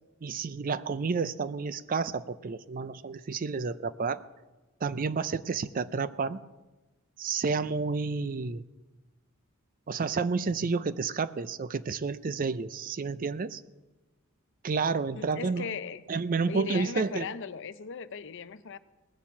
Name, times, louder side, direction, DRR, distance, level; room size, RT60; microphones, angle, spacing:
voice 1, 0.2-4.2 4.8-6.4 7.2-8.6 9.9-13.6 14.6-15.7 16.1-17.3, right 4 dB, 40° right, 0.4 m, -30 dB
voice 2, 15.2-16.0 16.4-18.8, left 6 dB, 55° left, 0.6 m, -38 dB
19.5 x 7.1 x 7.2 m
head